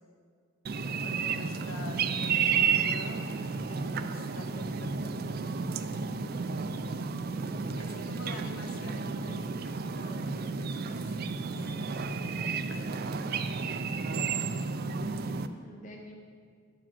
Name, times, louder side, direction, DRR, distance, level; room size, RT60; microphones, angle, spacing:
sound 1, 0.7-15.5, right 5 dB, 45° right, 0.4 m, -32 dB
voice 1, 1.0-3.2 3.6-5.4 7.7-11.2 11.6-12.1 14.0-14.7, left 2 dB, 70° left, 1 dB, 1.4 m, -47 dB
voice 2, 7.3-8.1 15.3-16.2, equal, 35° left, 0 dB, 0.7 m, -50 dB
11.0 x 5.0 x 7.4 m, 2.1 s
head